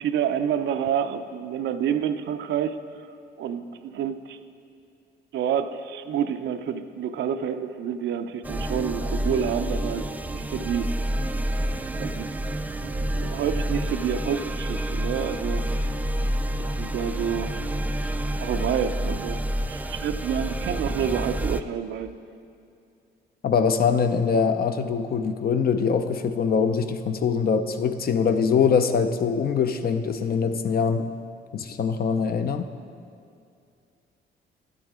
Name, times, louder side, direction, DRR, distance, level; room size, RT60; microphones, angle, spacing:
voice 1, 0.0-2.8 3.4-4.4 5.3-10.1 10.3-10.9 12.0-12.3 12.8-15.7 16.6-17.5 18.4-19.4 19.7-22.1, right 8 dB, 70° right, 9 dB, 0.5 m, -28 dB
sound 1, 8.4-21.6, right 1 dB, 10° right, 0.3 m, -28 dB
voice 2, 23.4-31.1 31.5-32.7, left 6 dB, 50° left, 9 dB, 0.6 m, -23 dB
11.5 x 8.3 x 3.6 m, 2.4 s
cardioid pair, 90°, 20 cm